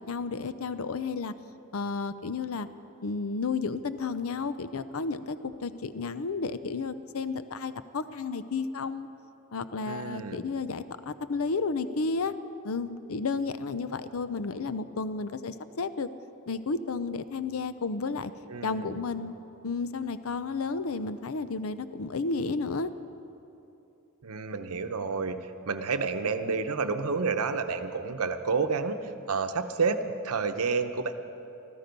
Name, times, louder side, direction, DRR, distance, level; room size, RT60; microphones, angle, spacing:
voice 1, 0.1-1.3 1.7-2.7 3.0-5.4 5.6-9.1 9.5-12.3 12.6-16.1 16.5-18.3 18.6-19.3 19.6-22.9, left 4 dB, 70° left, 13 dB, 0.6 m, -32 dB
voice 2, 9.9-10.5 18.5-19.0 24.2-31.1, right 4 dB, 90° right, 8 dB, 0.8 m, -30 dB
17.5 x 13.5 x 5.3 m, 2.8 s
head